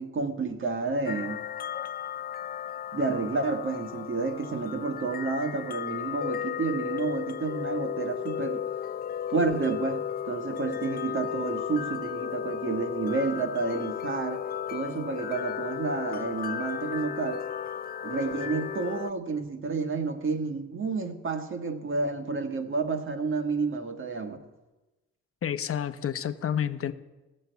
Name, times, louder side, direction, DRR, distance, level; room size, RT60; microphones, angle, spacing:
voice 1, 0.0-1.4 2.9-8.6 9.3-14.4 14.7-17.4 18.0-24.4, right 4 dB, 40° right, 1.6 m, -30 dB
sound 1, 1.1-19.1, left 9 dB, 30° left, 0.4 m, -34 dB
voice 2, 25.4-26.9, left 9 dB, 50° left, 0.9 m, -29 dB
15.5 x 6.6 x 8.0 m
cardioid pair, 90°, 30 cm